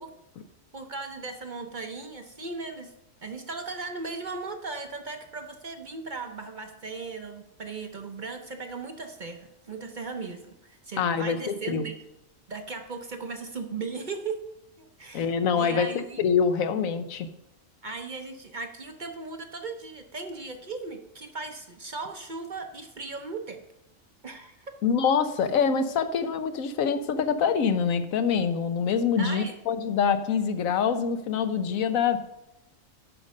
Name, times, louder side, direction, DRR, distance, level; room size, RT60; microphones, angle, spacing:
voice 1, 0.7-2.9 3.2-11.9 12.5-14.4 14.8-16.2 17.8-23.6 24.2-24.7 29.2-29.6, right 4 dB, 45° right, 6 dB, 0.7 m, -37 dB
voice 2, 11.0-11.9 15.1-15.9 16.2-17.3 24.8-32.2, left 6 dB, 85° left, 10 dB, 1.2 m, -25 dB
10.5 x 5.2 x 5.4 m, 0.87 s
omnidirectional pair, 1.4 m